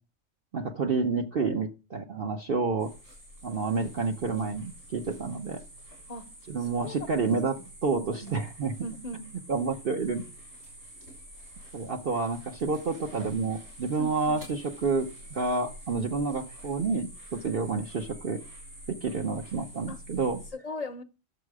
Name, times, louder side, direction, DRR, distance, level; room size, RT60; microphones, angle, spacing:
voice 1, 0.5-2.9 3.4-5.6 6.5-8.7 9.5-10.2 11.7-18.4 18.9-20.4, right 4 dB, 45° right, 1.1 m, -29 dB
sound 1, 2.8-20.5, right 1 dB, 70° right, 6.6 m, -48 dB
voice 2, 6.6-7.4 7.9-8.4 8.8-9.2 14.0-14.4 19.9-20.0 20.5-21.0, left 1 dB, 35° left, 0.8 m, -39 dB
11.5 x 7.5 x 4.8 m
omnidirectional pair, 1.4 m